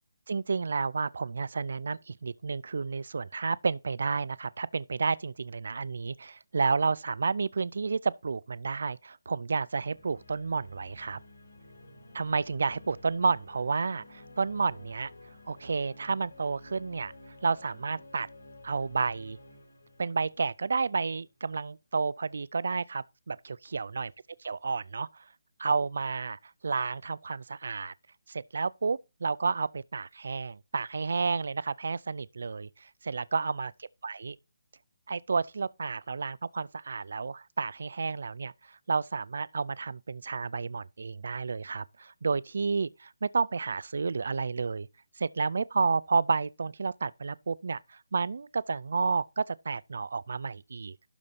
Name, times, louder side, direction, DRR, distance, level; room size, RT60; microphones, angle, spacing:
voice 1, 0.3-11.2 12.1-15.1 15.5-17.1 17.4-18.3 18.6-19.4 20.0-24.1 24.5-25.2 25.6-27.9 28.3-33.7 34.0-34.4 35.1-44.9 45.2-51.0, right 4 dB, 50° right, 0.4 m, -31 dB
sound 1, 9.8-21.3, left 2 dB, 85° left, 5.9 m, -52 dB
12.0 x 4.1 x 5.1 m
hypercardioid pair, 180°, 0 cm